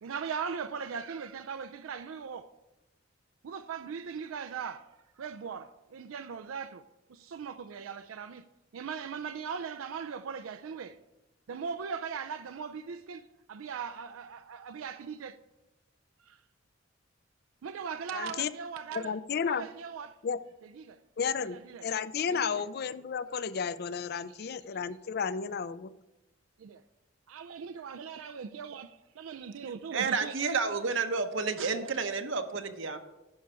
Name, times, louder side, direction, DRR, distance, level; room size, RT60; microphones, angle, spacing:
voice 1, 0.0-2.5 3.4-4.9 5.2-6.8 7.1-8.5 8.7-11.0 11.5-15.4 16.3-16.4 17.6-19.1 19.5-20.2 20.8-21.0 21.5-21.8 22.3-22.5 26.6-26.8 27.3-30.3, right 6 dB, 90° right, 0.4 m, -39 dB
voice 2, 18.1-18.5 18.9-19.7 20.2-20.4 21.2-25.9, left 6 dB, 50° left, 0.4 m, -32 dB
voice 3, 29.9-33.0, right 4 dB, 70° right, 0.8 m, -30 dB
11.0 x 4.7 x 6.7 m
head